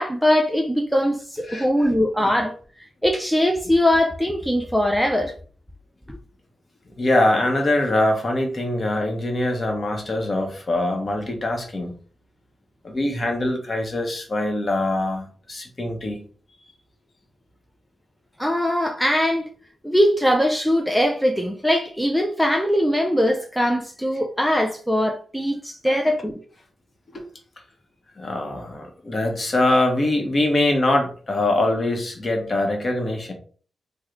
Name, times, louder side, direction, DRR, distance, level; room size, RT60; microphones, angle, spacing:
voice 1, 0.0-2.5 3.0-5.3 6.1-6.2 18.4-19.5 19.8-26.4, equal, ahead, 0.3 m, -21 dB
voice 2, 7.0-11.9 12.8-16.2 25.9-26.0 27.1-27.2 28.2-33.3, left 1 dB, 35° left, 0.8 m, -23 dB
3.1 x 2.1 x 3.6 m
wide cardioid pair, 120°, 0 cm